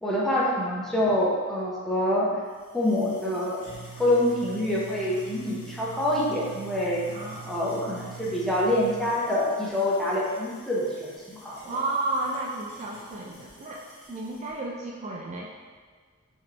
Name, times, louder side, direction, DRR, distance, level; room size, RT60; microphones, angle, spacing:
voice 1, 0.0-2.3 2.7-3.6 4.0-7.0 7.4-11.6, left 1 dB, ahead, -6 dB, 0.6 m, -26 dB
sound 1, 2.5-14.5, right 4 dB, 65° left, 1.2 m, -46 dB
voice 2, 7.1-7.4 11.6-13.8 14.1-15.5, right 2 dB, 30° right, -3 dB, 0.3 m, -32 dB
3.9 x 3.0 x 3.2 m, 1.5 s
head